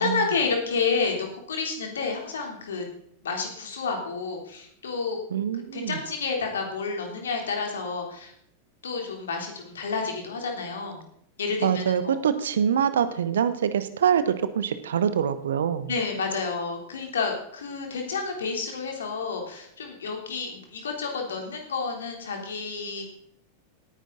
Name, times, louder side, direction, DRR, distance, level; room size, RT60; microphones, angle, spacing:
voice 1, 0.0-2.9 3.2-5.2 5.7-8.3 8.8-11.1 11.4-12.2 15.9-23.0, left 4 dB, 65° left, 2 dB, 3.3 m, -30 dB
voice 2, 5.3-6.0 11.6-15.9, right 8 dB, 65° right, 13 dB, 1.0 m, -25 dB
17.5 x 10.0 x 4.0 m, 0.67 s
figure-of-eight pair, 90°, 0 cm